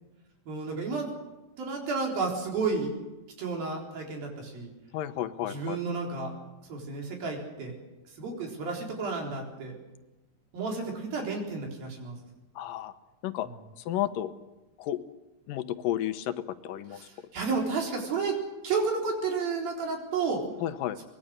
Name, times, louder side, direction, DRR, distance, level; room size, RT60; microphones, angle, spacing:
voice 1, 0.5-1.1 1.6-2.9 3.4-4.7 5.5-6.3 6.7-7.8 8.2-9.8 10.5-12.2 16.9-18.4 18.6-20.4, right 4 dB, 85° right, 1 dB, 5.9 m, -31 dB
voice 2, 4.9-5.8 12.6-12.9 13.2-13.5 13.9-14.3 14.8-15.0 15.5-17.0 20.6-21.0, left 12 dB, 75° left, 11 dB, 2.6 m, -32 dB
24.0 x 21.0 x 6.7 m, 1.1 s
omnidirectional pair, 4.0 m